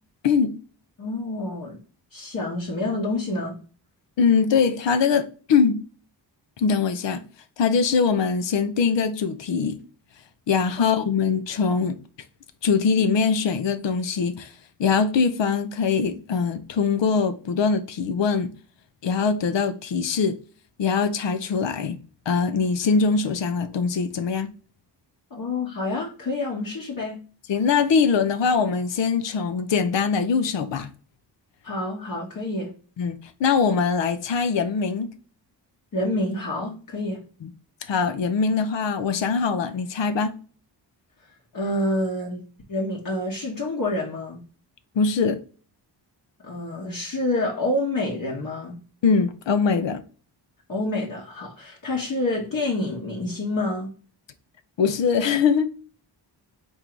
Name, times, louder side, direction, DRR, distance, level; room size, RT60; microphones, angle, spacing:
voice 1, 0.2-0.5 4.2-5.8 6.6-7.2 7.6-9.8 10.5-12.0 12.6-14.5 14.8-18.5 19.0-20.4 20.8-22.0 22.3-24.5 27.5-30.9 33.0-35.1 37.4-37.5 37.8-40.3 45.0-45.4 49.0-50.0 54.8-55.7, left 5 dB, 80° left, 0.7 m, -22 dB
voice 2, 1.0-1.8 2.1-3.6 10.8-10.9 25.3-27.2 31.6-32.7 35.9-37.2 41.5-44.4 46.4-48.8 50.7-53.9, left 2 dB, 50° left, 1.0 m, -28 dB
3.7 x 2.7 x 4.5 m
wide cardioid pair, 110°, 43 cm